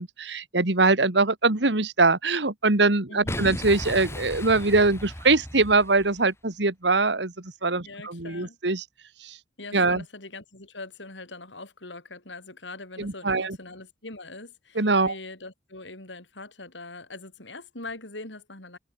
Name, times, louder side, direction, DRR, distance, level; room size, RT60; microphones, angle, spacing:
voice 1, 0.0-8.8 9.2-9.4 9.7-10.0 13.0-13.6 14.8-15.1, right 3 dB, 70° right, 2.1 m, -23 dB
Boom, 3.2-6.2, left 1 dB, 15° left, 7.7 m, -35 dB
voice 2, 7.8-8.6 9.6-18.8, left 2 dB, 90° left, 6.6 m, -42 dB
head